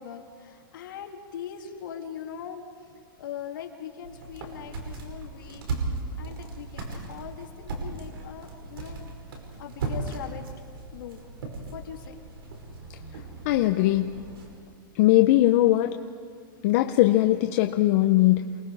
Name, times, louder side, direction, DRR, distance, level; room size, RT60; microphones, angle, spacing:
voice 1, 0.0-2.6 3.2-5.6 6.2-9.1 9.6-10.7 10.9-11.2 11.7-12.2, left 8 dB, 65° left, 1 dB, 2.6 m, -40 dB
sound 1, 4.0-14.5, right 3 dB, 85° right, 5.2 m, -37 dB
voice 2, 13.4-14.1 14.9-16.0 16.6-18.6, left 15 dB, 40° left, 6 dB, 0.7 m, -20 dB
28.5 x 20.0 x 4.8 m, 2.4 s
supercardioid pair, 160°, 12 cm